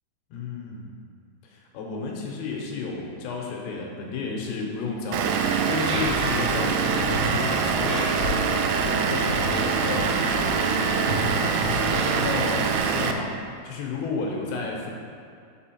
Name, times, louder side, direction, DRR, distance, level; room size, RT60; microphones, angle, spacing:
voice 1, 0.3-0.9 1.4-5.4 5.7-11.2 11.6-13.3 13.6-14.9, left 4 dB, 75° left, -1 dB, 2.7 m, -32 dB
Vehicle / Engine, 5.1-13.1, right 5 dB, 85° right, 2.7 m, -24 dB
sound 1, 5.4-12.8, left 1 dB, 65° right, 3.2 m, -33 dB
6.9 x 5.3 x 4.3 m, 2.4 s
omnidirectional pair, 5.3 m